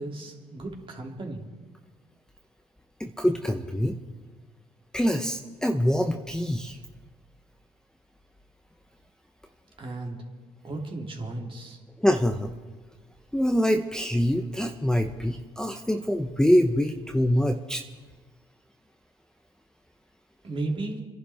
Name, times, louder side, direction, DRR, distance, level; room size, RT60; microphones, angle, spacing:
voice 1, 0.0-1.4 9.8-10.2 10.6-11.8 20.4-21.0, right 2 dB, 40° right, 0 dB, 2.9 m, -34 dB
voice 2, 3.0-4.0 4.9-6.8 12.0-12.5 13.3-17.8, equal, 5° left, 4 dB, 1.0 m, -24 dB
28.0 x 11.0 x 3.6 m, 1.4 s
supercardioid pair, 70°, 13 cm